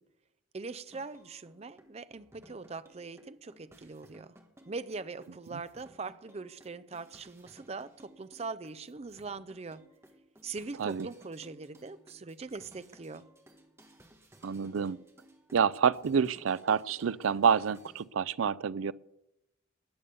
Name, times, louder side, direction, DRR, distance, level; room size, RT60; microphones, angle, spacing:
voice 1, 0.5-4.4 4.7-9.8 10.4-13.3, right 4 dB, 30° right, 0.5 m, -42 dB
sound 1, 0.9-18.0, right 1 dB, 15° right, 1.5 m, -59 dB
voice 2, 14.4-15.0 15.5-18.9, right 7 dB, 85° right, 0.4 m, -28 dB
20.0 x 7.0 x 6.9 m
head